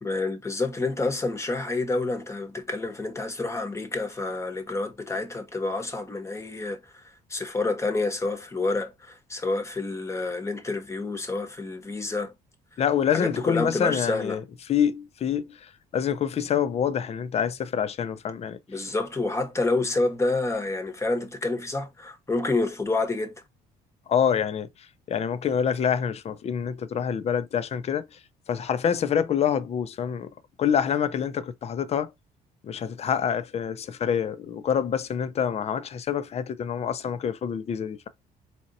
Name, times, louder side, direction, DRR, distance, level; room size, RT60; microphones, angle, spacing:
voice 1, 0.0-12.3 12.7-12.8 13.1-14.4 18.7-23.3, left 3 dB, 15° left, 1.0 m, -28 dB
voice 2, 12.8-14.4 14.7-18.6 24.1-24.7 25.1-28.1 28.5-30.3 30.6-32.1 32.6-38.1, left 8 dB, 40° left, 0.5 m, -26 dB
4.2 x 2.8 x 2.6 m
cardioid pair, 110°, 17 cm